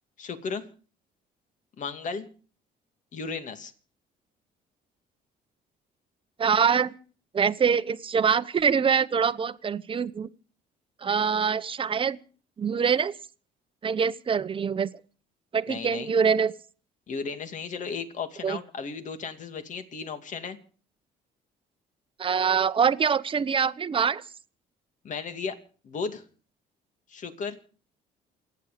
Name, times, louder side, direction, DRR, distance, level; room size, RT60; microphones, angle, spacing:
voice 1, 0.2-0.7 1.8-2.3 3.1-3.7 15.7-16.1 17.1-20.6 25.0-25.6 25.8-26.2 27.1-27.6, left 5 dB, 50° left, 2.3 m, -35 dB
voice 2, 6.4-6.9 7.3-10.3 11.0-12.2 12.6-13.1 13.8-14.9 15.5-16.5 18.4-18.6 22.2-24.2, right 6 dB, 30° right, 0.9 m, -24 dB
28.5 x 9.9 x 5.1 m
cardioid pair, 110°, 17 cm